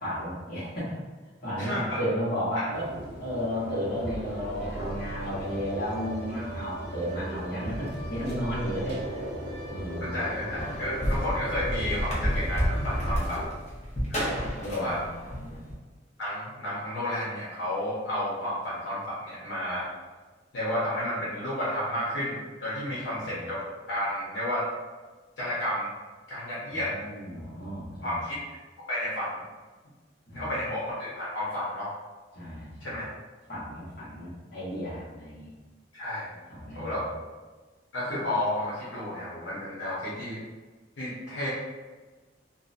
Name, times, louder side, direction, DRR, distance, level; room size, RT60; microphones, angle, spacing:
voice 1, 0.0-1.0 1.4-2.9 3.2-9.0 9.7-10.3 13.1-13.4 14.6-15.6 23.3-23.4 26.7-28.2 30.3-30.5 32.3-33.0 33.5-35.5 36.5-37.0, equal, 55° left, -10 dB, 1.2 m, -33 dB
voice 2, 1.6-2.0 2.6-2.7 10.0-13.5 14.1-14.2 14.7-15.0 16.2-19.9 20.5-24.7 25.4-25.9 26.3-26.9 28.0-28.4 28.9-29.4 30.3-31.9 32.8-33.1 35.9-36.3 36.7-37.0 37.9-40.4 41.0-41.5, left 1 dB, 90° left, -9 dB, 0.8 m, -31 dB
sound 1, 2.7-13.4, right 1 dB, 60° right, 0.5 m, -38 dB
sound 2, 10.5-15.7, equal, 40° left, 0.7 m, -30 dB
2.6 x 2.1 x 2.5 m, 1.3 s
head